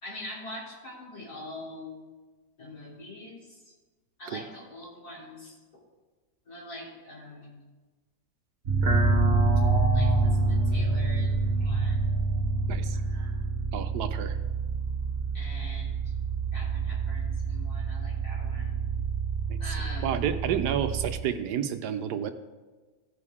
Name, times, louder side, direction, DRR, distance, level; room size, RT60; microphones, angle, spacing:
voice 1, 0.0-2.0 2.6-3.7 4.2-5.5 6.5-7.6 9.9-12.0 12.9-13.4 15.3-16.0 16.5-18.8 19.6-20.2, left 1 dB, 60° left, -6 dB, 3.9 m, -43 dB
sound 1, 8.7-21.1, right 3 dB, 40° right, 1.5 m, -27 dB
voice 2, 13.7-14.4 19.5-19.6 20.0-22.3, right 9 dB, 75° right, 9 dB, 1.1 m, -30 dB
16.5 x 6.4 x 3.6 m, 1.3 s
omnidirectional pair, 1.8 m